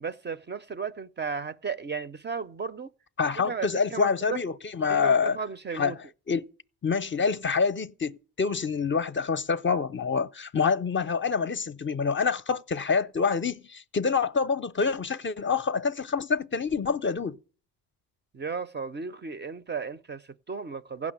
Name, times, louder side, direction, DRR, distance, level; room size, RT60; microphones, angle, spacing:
voice 1, 0.0-2.9 3.4-4.4 4.9-6.0 18.3-21.1, right 5 dB, 25° right, 0.5 m, -34 dB
voice 2, 3.2-5.4 5.7-5.9 6.3-6.5 6.8-17.4, left 5 dB, 30° left, 0.6 m, -26 dB
15.5 x 6.0 x 8.7 m
cardioid pair, 75°, 40 cm